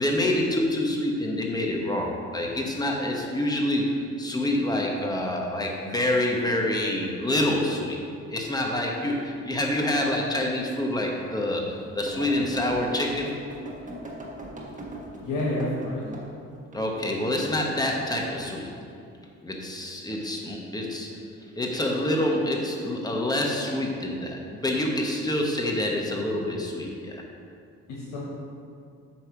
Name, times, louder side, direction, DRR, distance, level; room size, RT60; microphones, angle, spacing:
voice 1, 0.0-8.0 8.3-13.3 16.7-18.8 19.4-21.1 21.6-27.2, left 1 dB, 15° left, -1 dB, 1.2 m, -27 dB
sound 1, 10.5-10.6 11.2-11.3 12.1-16.3 16.7-17.4 18.0-18.3, right 1 dB, 25° right, 1.4 m, -39 dB
voice 2, 15.2-16.0 27.9-28.2, left 1 dB, 90° left, -6 dB, 1.3 m, -29 dB
8.4 x 3.3 x 5.9 m, 2.4 s
cardioid pair, 90°, 30 cm